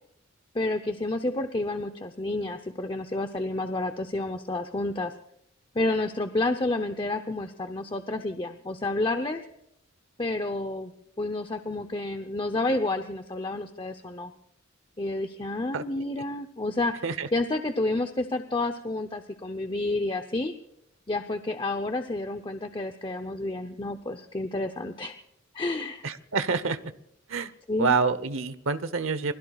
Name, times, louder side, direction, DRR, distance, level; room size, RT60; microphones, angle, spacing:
voice 1, 0.5-5.1 5.7-9.4 10.2-10.9 11.2-14.3 15.0-17.0 17.3-20.5 21.1-25.2 25.5-26.0 27.7-28.0, left 2 dB, 25° left, 7 dB, 0.7 m, -30 dB
voice 2, 26.0-26.8 27.3-27.5 27.8-29.3, right 4 dB, 70° right, 14 dB, 0.9 m, -27 dB
28.0 x 21.0 x 2.4 m, 0.75 s
head